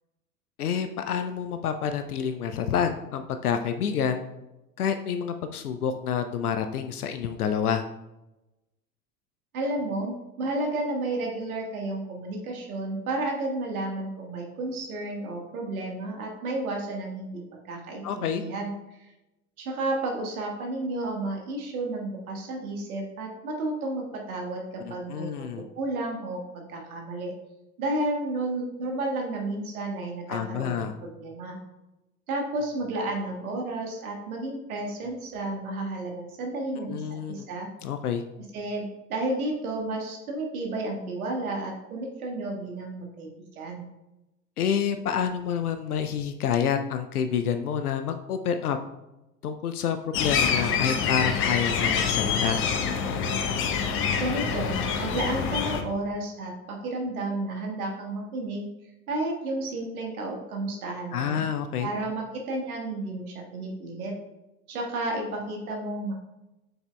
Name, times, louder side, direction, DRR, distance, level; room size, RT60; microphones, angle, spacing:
voice 1, 0.6-4.2 4.8-7.8 18.0-18.4 24.8-25.6 30.3-30.9 36.8-37.5 37.8-38.2 44.6-48.8 49.4-52.6 61.1-61.9, left 8 dB, 75° left, 8 dB, 0.6 m, -28 dB
voice 2, 9.5-19.1 19.6-27.3 27.8-31.6 32.3-37.0 37.3-37.7 38.5-43.9 54.2-58.7 59.1-61.4 61.8-64.1 64.7-66.1, right 2 dB, 65° right, 1 dB, 1.5 m, -32 dB
sound 1, 50.1-55.8, left 6 dB, 25° left, 0.7 m, -26 dB
7.8 x 6.0 x 2.2 m, 0.97 s
figure-of-eight pair, 80°, 46 cm